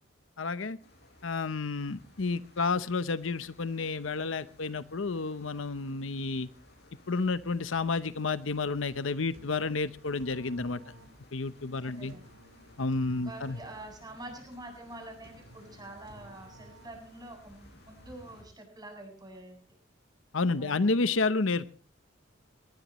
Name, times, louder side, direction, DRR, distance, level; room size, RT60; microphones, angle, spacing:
voice 1, 0.4-0.8 1.2-6.5 7.1-10.8 11.3-12.1 12.8-13.6 20.3-21.7, left 3 dB, 75° left, 14 dB, 0.8 m, -30 dB
sound 1, 0.8-18.4, left 1 dB, 55° left, 7.9 m, -58 dB
sound 2, 9.3-17.4, right 1 dB, 85° right, 4.7 m, -55 dB
voice 2, 11.8-12.2 13.2-19.6 20.6-20.9, right 1 dB, 20° right, 3 dB, 7.5 m, -46 dB
23.0 x 20.5 x 3.1 m, 0.38 s
head